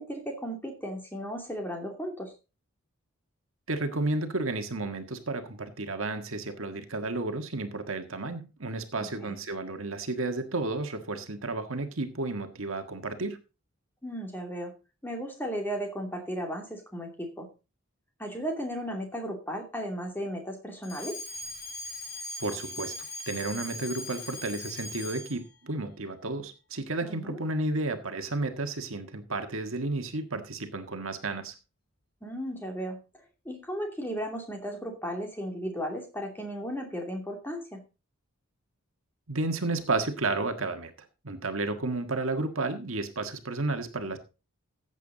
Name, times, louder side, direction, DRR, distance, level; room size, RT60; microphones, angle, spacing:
voice 1, 0.0-2.3 9.2-9.4 14.0-14.7 15.0-17.5 18.2-21.2 27.0-27.4 32.2-33.0 33.4-37.8, equal, 10° left, 2 dB, 2.6 m, -35 dB
voice 2, 3.7-13.4 22.4-22.9 23.3-31.5 39.3-40.9 41.2-44.2, right 2 dB, 70° right, 6 dB, 1.6 m, -32 dB
Alarm, 20.8-25.5, left 2 dB, 45° left, 4.9 m, -40 dB
14.5 x 8.3 x 4.0 m, 0.31 s
head